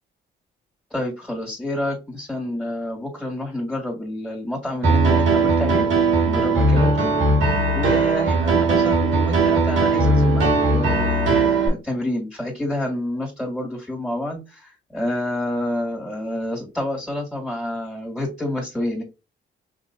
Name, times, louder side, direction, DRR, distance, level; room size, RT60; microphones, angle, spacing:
voice 1, 0.9-5.9 6.2-7.1 7.7-19.0, left 1 dB, 5° left, -2 dB, 2.3 m, -28 dB
Piano, 4.8-11.7, right 3 dB, 80° right, 2.1 m, -18 dB
5.9 x 2.9 x 2.7 m, 0.27 s
cardioid pair, 90°, 20 cm